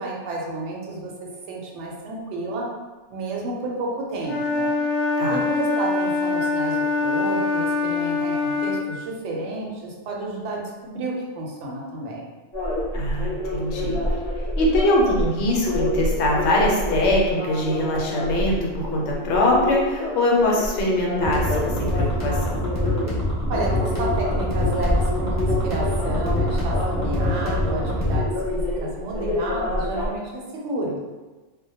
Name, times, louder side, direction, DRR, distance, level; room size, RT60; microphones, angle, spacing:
voice 1, 0.0-2.7 3.1-4.7 5.3-12.3 23.5-31.0, right 2 dB, 80° right, -2 dB, 0.9 m, -31 dB
Wind instrument woodwind instrument, 4.2-8.9, left 3 dB, 60° left, 0.5 m, -24 dB
sound 1, 12.5-30.1, left 1 dB, 25° left, 0.8 m, -27 dB
voice 2, 12.9-14.0 14.4-22.6, left 1 dB, 75° left, -2 dB, 0.9 m, -22 dB
sound 2, 21.2-28.2, left 1 dB, 25° right, 0.4 m, -25 dB
2.1 x 2.1 x 2.8 m, 1.2 s
omnidirectional pair, 1.2 m